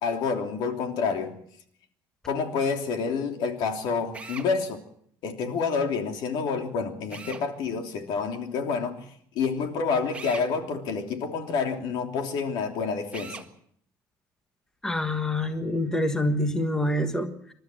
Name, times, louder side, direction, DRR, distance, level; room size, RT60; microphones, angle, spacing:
voice 1, 0.0-1.3 2.3-4.8 5.2-9.1 9.3-13.4, left 5 dB, 70° left, 3.1 m, -28 dB
Drill, 4.1-4.5 7.1-7.5 10.1-10.5 13.1-13.5, right 4 dB, 15° right, 1.7 m, -40 dB
voice 2, 14.8-17.5, left 1 dB, 5° left, 1.5 m, -26 dB
28.0 x 12.5 x 7.7 m
cardioid pair, 150°, 8 cm